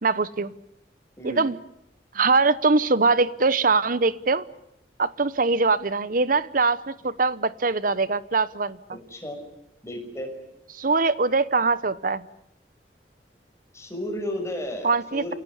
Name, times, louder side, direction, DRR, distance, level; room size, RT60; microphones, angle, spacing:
voice 1, 0.0-0.5 1.2-1.6 2.1-4.5 5.0-8.8 10.7-12.3 14.8-15.3, right 4 dB, 50° right, 16 dB, 1.0 m, -22 dB
voice 2, 9.8-10.3 13.7-15.4, left 1 dB, 15° left, 3 dB, 5.9 m, -33 dB
28.5 x 17.5 x 9.9 m, 0.79 s
head